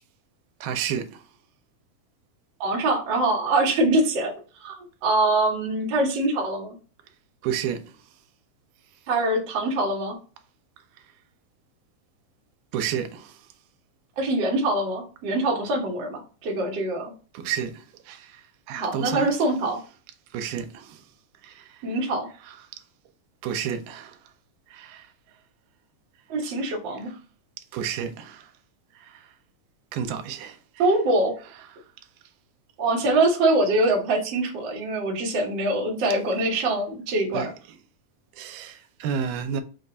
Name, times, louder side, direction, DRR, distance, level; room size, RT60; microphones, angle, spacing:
voice 1, 0.6-1.3 7.4-8.0 12.7-13.5 17.3-19.3 20.3-21.1 21.4-21.9 22.4-22.8 23.4-24.2 24.7-25.1 27.1-27.2 27.7-28.5 28.9-29.3 29.9-30.8 37.3-37.5 38.3-39.6, right 8 dB, 85° right, 2.2 m, -32 dB
voice 2, 2.6-4.3 4.6-6.8 9.1-10.2 14.2-17.1 18.7-19.8 21.8-22.3 26.3-27.1 30.8-31.3 32.8-37.5, right 2 dB, 65° right, 1.1 m, -24 dB
5.3 x 2.3 x 3.8 m
omnidirectional pair, 3.8 m